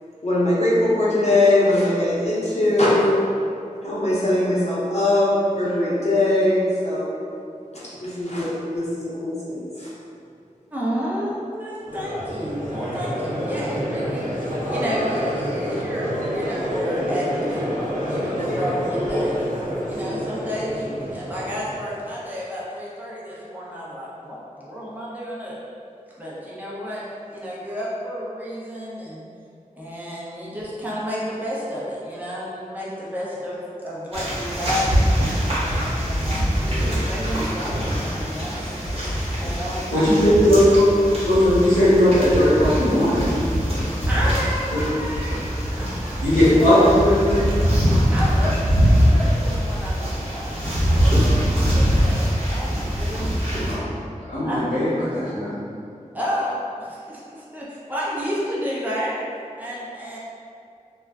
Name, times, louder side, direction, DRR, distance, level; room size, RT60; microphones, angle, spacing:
voice 1, 0.2-3.3 3.8-7.1 8.0-9.9, left 1 dB, 50° left, -9 dB, 0.7 m, -21 dB
voice 2, 10.7-17.8 18.0-19.4 19.8-25.6 26.2-27.0 27.3-29.2 29.8-35.2 35.7-38.8 39.4-40.1 44.0-45.4 45.7-46.3 48.1-53.5 54.4-54.6 56.1-59.2 59.6-60.2, equal, 10° right, -7 dB, 0.7 m, -31 dB
Crowd, 11.9-22.0, equal, 85° right, 0.5 m, -27 dB
sound 1, 34.1-53.7, equal, 45° right, 0.9 m, -22 dB
voice 3, 39.9-40.8 41.2-43.2 44.7-44.8 46.2-47.5 53.7-53.9 54.2-55.5, equal, 90° left, -13 dB, 0.8 m, -17 dB
2.3 x 2.1 x 3.5 m, 2.5 s
wide cardioid pair, 45°, 14 cm